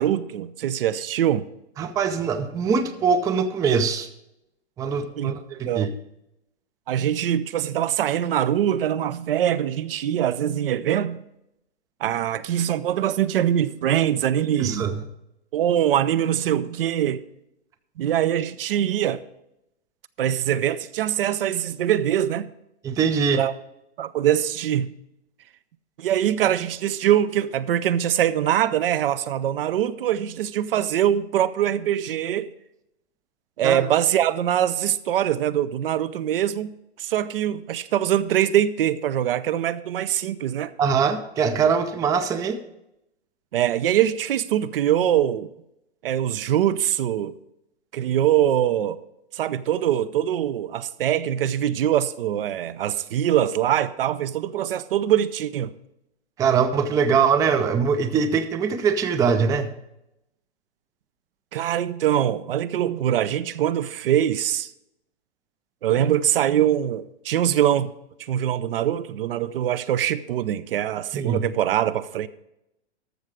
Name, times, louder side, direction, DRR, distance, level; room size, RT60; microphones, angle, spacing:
voice 1, 0.0-1.5 5.2-5.3 5.7-5.9 6.9-11.2 12.0-14.9 15.5-17.2 18.0-19.2 20.2-22.5 23.3-23.5 24.0-24.9 26.0-32.5 33.6-36.7 37.0-40.7 43.5-45.5 46.0-47.3 47.9-49.0 49.3-55.7 61.5-64.7 65.8-67.9 68.2-72.3, right 11 dB, 55° right, 0.6 m, -23 dB
voice 2, 1.8-4.1 4.8-5.9 14.6-14.9 22.8-23.4 33.6-33.8 40.8-42.6 56.4-59.7 71.1-71.5, right 6 dB, 10° right, 0.5 m, -22 dB
13.0 x 6.4 x 4.8 m
hypercardioid pair, 120°, 33 cm